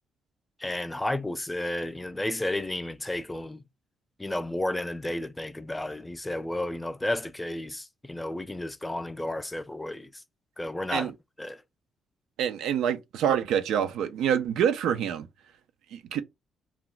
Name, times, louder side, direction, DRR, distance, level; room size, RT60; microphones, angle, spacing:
voice 1, 0.6-3.6 4.2-10.2 10.6-11.1 11.4-11.6, left 1 dB, 10° left, 0.4 m, -32 dB
voice 2, 12.4-15.3 15.9-16.2, right 9 dB, 85° right, 0.3 m, -26 dB
2.3 x 2.1 x 3.7 m
cardioid pair, 90°, 0 cm